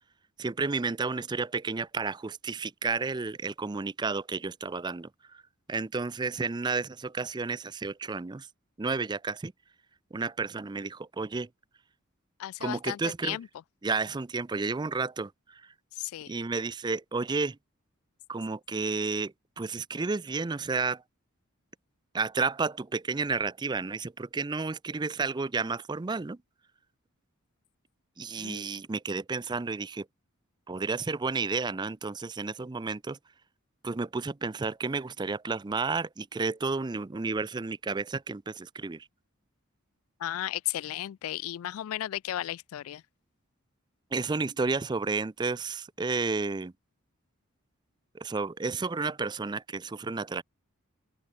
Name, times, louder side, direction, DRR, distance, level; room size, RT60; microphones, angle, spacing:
voice 1, 0.4-5.4 5.7-8.5 8.8-9.5 10.1-11.5 12.6-13.4 13.8-15.7 16.3-17.6 18.3-21.0 22.1-26.4 28.2-30.1 30.7-33.2 33.8-39.1 44.1-46.7 48.1-50.4, right 4 dB, 20° right, 0.4 m, -31 dB
voice 2, 12.4-13.5 15.9-16.3 28.4-28.7 40.2-43.0, left 13 dB, 80° left, 0.3 m, -35 dB
open air
head